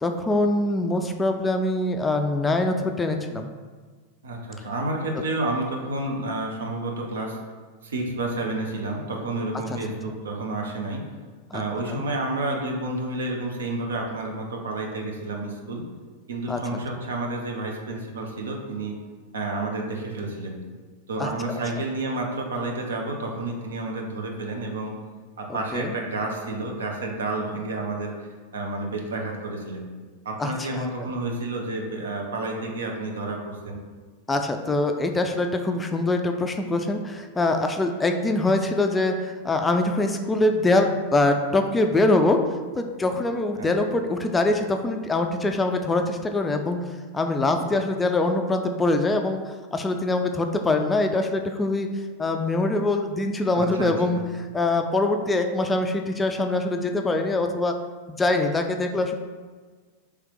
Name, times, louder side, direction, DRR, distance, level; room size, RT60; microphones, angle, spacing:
voice 1, 0.0-3.5 9.7-9.8 11.5-11.6 11.9-12.0 16.5-16.6 21.2-21.3 25.5-25.9 30.4-30.9 34.3-42.4 42.7-46.8 47.1-54.2 54.5-57.8 58.1-59.2, left 2 dB, 15° left, 5 dB, 0.3 m, -24 dB
voice 2, 4.2-7.4 7.8-11.1 11.5-15.9 16.3-18.9 19.3-20.6 21.1-24.9 25.4-29.9 30.2-33.8 43.6-43.8 53.5-54.2, right 2 dB, 65° right, 1 dB, 0.7 m, -30 dB
3.3 x 3.3 x 4.7 m, 1.5 s
figure-of-eight pair, 90°, 0 cm